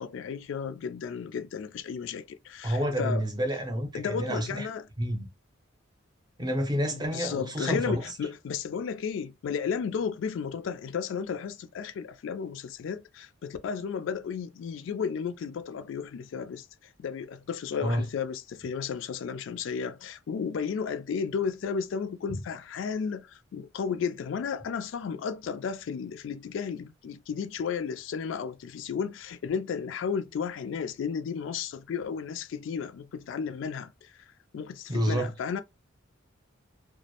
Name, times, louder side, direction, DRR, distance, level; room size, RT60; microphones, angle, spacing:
voice 1, 0.0-3.2 3.9-4.9 6.9-16.7 17.0-34.1 34.5-35.6, left 6 dB, 65° left, 0.3 m, -33 dB
voice 2, 2.6-4.7 5.0-5.3 6.4-8.0 17.8-18.1 22.3-22.4 34.9-35.3, equal, 20° right, 0.6 m, -29 dB
2.3 x 2.0 x 2.7 m
head